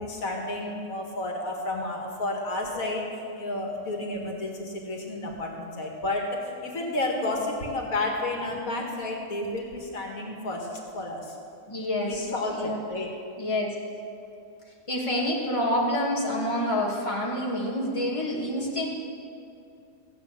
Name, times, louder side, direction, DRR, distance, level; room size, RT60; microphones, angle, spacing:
voice 1, 0.0-10.7 10.9-11.4 12.0-13.1, left 2 dB, 80° left, 1 dB, 2.2 m, -31 dB
voice 2, 11.7-12.8 13.4-13.7 14.9-18.9, left 1 dB, 20° left, -3 dB, 2.3 m, -27 dB
15.5 x 7.3 x 8.7 m, 2.5 s
omnidirectional pair, 1.4 m